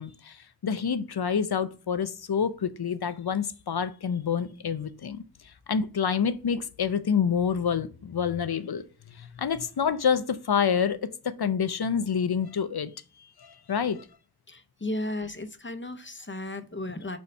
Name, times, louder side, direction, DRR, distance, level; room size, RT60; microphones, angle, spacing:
voice 1, 0.0-8.8 9.1-11.1 11.4-12.9 13.4-14.1, left 7 dB, 80° left, 0.6 m, -28 dB
voice 2, 14.5-17.2, left 1 dB, 30° left, 0.8 m, -34 dB
4.6 x 4.2 x 5.3 m
wide cardioid pair, 45°, 37 cm